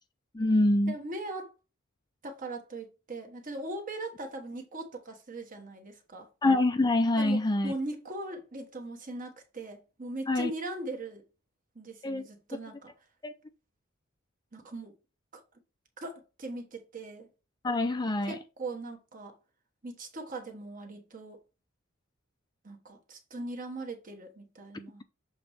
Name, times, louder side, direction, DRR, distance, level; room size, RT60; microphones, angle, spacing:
voice 1, 0.3-1.0 6.4-7.7 10.3-10.5 12.0-12.3 13.2-13.3 17.6-18.4, left 2 dB, 20° left, 0.4 m, -25 dB
voice 2, 0.9-1.5 2.2-6.3 7.2-11.2 11.7-12.9 14.5-14.9 15.3-15.4 16.0-17.3 18.3-19.4 19.8-21.4 22.6-25.0, right 2 dB, 40° right, 1.3 m, -40 dB
6.9 x 3.1 x 4.9 m
head